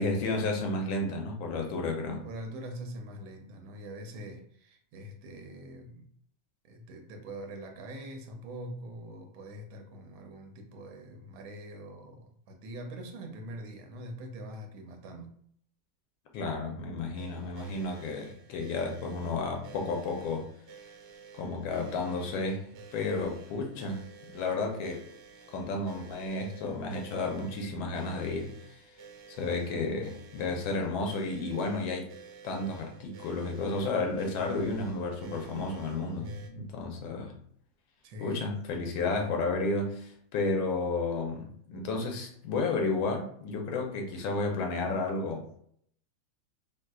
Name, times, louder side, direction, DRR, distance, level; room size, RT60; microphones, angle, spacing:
voice 1, 0.0-2.3 16.3-20.5 21.4-24.0 24.3-25.1 25.5-28.5 29.3-32.1 32.4-37.3 38.2-45.6, left 3 dB, 85° left, 2 dB, 1.4 m, -32 dB
voice 2, 2.2-6.1 6.6-15.3 38.0-38.5, right 1 dB, 90° right, 4 dB, 1.4 m, -43 dB
sound 1, 17.1-36.5, right 6 dB, 70° right, 1.0 m, -52 dB
3.6 x 2.6 x 2.3 m, 0.65 s
omnidirectional pair, 2.1 m